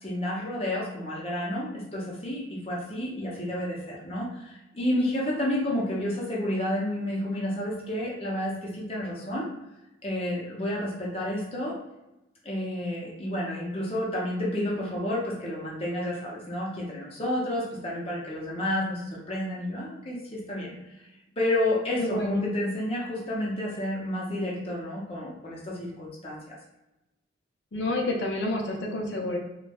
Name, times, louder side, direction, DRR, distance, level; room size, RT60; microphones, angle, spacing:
voice 1, 0.0-9.5 10.0-11.7 12.4-20.8 21.4-26.6, left 1 dB, 30° left, -4 dB, 0.7 m, -30 dB
voice 2, 22.0-22.5 27.7-29.4, left 2 dB, 75° left, -1 dB, 0.5 m, -29 dB
4.1 x 2.2 x 2.3 m, 0.94 s
head